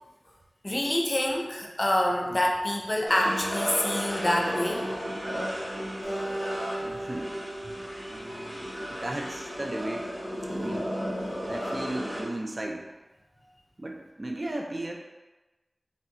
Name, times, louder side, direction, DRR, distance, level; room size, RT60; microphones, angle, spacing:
voice 1, 0.6-4.9, left 1 dB, 40° left, 0 dB, 0.5 m, -26 dB
sound 1, 3.1-12.2, equal, 80° right, 1.2 m, -34 dB
Acoustic guitar, 6.0-9.4, right 1 dB, 35° right, 1.0 m, -37 dB
voice 2, 6.8-7.4 8.1-10.2 10.6-10.9 11.5-12.9 13.8-15.0, right 1 dB, 50° right, 1 dB, 0.4 m, -36 dB
3.2 x 2.6 x 2.6 m, 1.1 s
wide cardioid pair, 55°, 0 cm